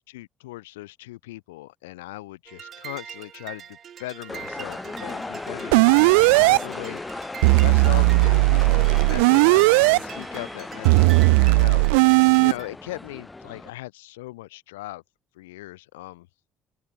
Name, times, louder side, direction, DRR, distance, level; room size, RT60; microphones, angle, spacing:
voice 1, 0.0-7.3 7.6-11.8 12.4-15.0 15.3-16.3, left 19 dB, 80° left, 4.5 m, -39 dB
sound 1, 2.5-12.7, right 9 dB, 50° right, 3.7 m, -42 dB
sound 2, 4.3-13.7, left 3 dB, 20° left, 2.5 m, -36 dB
sound 3, 5.7-6.6 7.4-10.0 10.9-12.5, right 29 dB, 80° right, 0.3 m, -16 dB
open air
hypercardioid pair, 55°, 0 cm